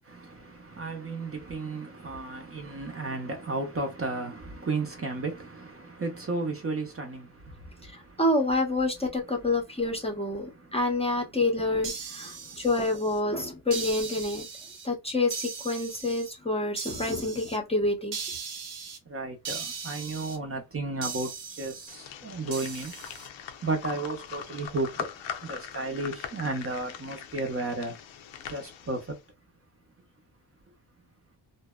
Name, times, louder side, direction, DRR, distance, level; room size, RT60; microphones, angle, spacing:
voice 1, 0.1-7.3 19.1-21.3 21.6-22.9 23.6-24.9 25.4-28.0 28.5-29.0, right 3 dB, 30° right, 0.7 m, -33 dB
voice 2, 7.9-14.5 14.8-18.2, left 2 dB, 15° left, 0.7 m, -28 dB
sound 1, 11.8-13.2 13.7-14.9 15.3-16.3 16.8-17.6 18.1-19.0 19.4-20.4 21.0-22.0 22.5-23.3, right 5 dB, 70° right, 0.9 m, -38 dB
sound 2, 21.9-29.2, left 8 dB, 85° left, 0.6 m, -41 dB
2.6 x 2.1 x 2.2 m
cardioid pair, 125°, 45 cm